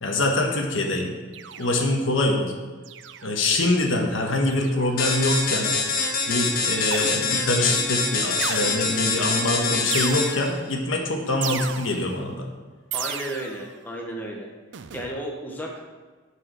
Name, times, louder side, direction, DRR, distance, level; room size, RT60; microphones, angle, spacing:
voice 1, 0.0-1.1 1.6-2.5 3.2-5.7 6.3-12.5, left 2 dB, 75° left, 1 dB, 1.3 m, -24 dB
sound 1, 1.3-2.0 2.8-3.5 4.4-4.9 6.9-7.6 8.4-9.1 9.9-10.7 11.4-12.2 12.9-13.7 14.7-15.2, right 8 dB, 65° right, 0.4 m, -35 dB
sound 2, 5.0-10.5, left 4 dB, 45° left, 1.2 m, -25 dB
voice 2, 12.9-14.5 14.9-15.8, equal, 10° left, -1 dB, 1.0 m, -33 dB
9.5 x 4.8 x 6.1 m, 1.4 s
head